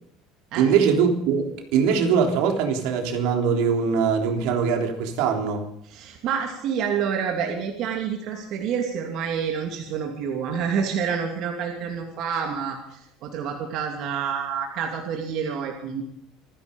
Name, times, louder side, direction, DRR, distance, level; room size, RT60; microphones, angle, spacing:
voice 1, 0.5-5.6, right 6 dB, 70° right, 3 dB, 3.4 m, -22 dB
voice 2, 5.9-16.0, right 7 dB, 55° right, 2 dB, 2.6 m, -28 dB
26.5 x 10.5 x 5.3 m, 0.75 s
supercardioid pair, 130°, 0 cm